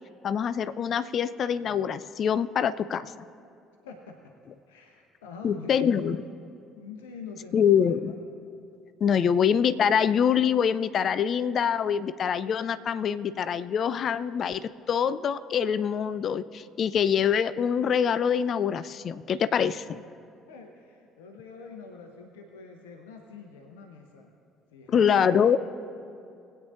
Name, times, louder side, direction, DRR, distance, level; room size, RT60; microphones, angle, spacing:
voice 1, 0.2-3.3 5.4-6.2 7.5-8.1 9.0-20.0 24.9-25.6, left 8 dB, 45° left, 15 dB, 0.4 m, -25 dB
voice 2, 3.8-4.3 4.7-6.1 6.8-8.2 20.5-24.3 24.7-25.6, left 5 dB, 70° left, 3 dB, 0.8 m, -44 dB
20.0 x 8.7 x 2.5 m, 2.6 s
figure-of-eight pair, 55°, 0 cm